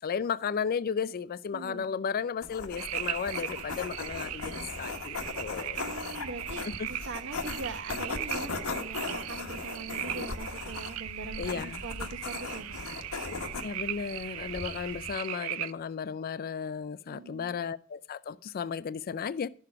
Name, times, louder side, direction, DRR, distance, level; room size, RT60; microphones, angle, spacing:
voice 1, 0.0-5.8 6.8-6.9 11.4-11.8 13.6-19.5, left 6 dB, 45° left, 0.4 m, -34 dB
voice 2, 1.5-2.0 5.8-12.8 17.1-17.6, right 3 dB, 55° right, 1.0 m, -42 dB
sound 1, 2.4-15.1, left 4 dB, 80° left, 1.2 m, -38 dB
sound 2, 2.8-15.7, right 12 dB, 75° right, 0.5 m, -39 dB
12.0 x 6.8 x 4.7 m
head